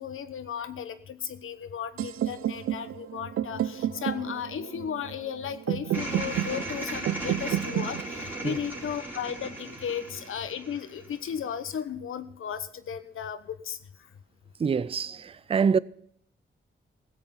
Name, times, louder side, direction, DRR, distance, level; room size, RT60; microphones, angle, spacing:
voice 1, 0.0-13.8, left 8 dB, 75° left, 1.0 m, -35 dB
sound 1, 2.0-9.9, right 12 dB, 80° right, 0.5 m, -32 dB
sound 2, 5.9-11.3, right 1 dB, 10° right, 3.1 m, -37 dB
voice 2, 14.6-15.8, right 6 dB, 25° right, 0.4 m, -25 dB
15.5 x 8.1 x 5.5 m
cardioid pair, 90°, 21 cm